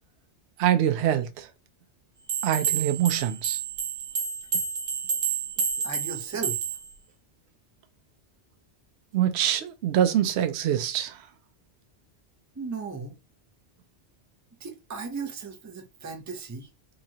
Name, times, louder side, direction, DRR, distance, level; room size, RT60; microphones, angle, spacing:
voice 1, 0.6-1.5 2.4-3.6 9.1-11.2, right 10 dB, 70° right, 0.8 m, -24 dB
sound 1, 2.3-6.9, right 6 dB, 85° right, 1.4 m, -29 dB
voice 2, 5.8-6.6 12.6-13.1 14.6-16.7, right 4 dB, 25° right, 0.4 m, -36 dB
3.9 x 3.0 x 2.8 m
omnidirectional pair, 1.2 m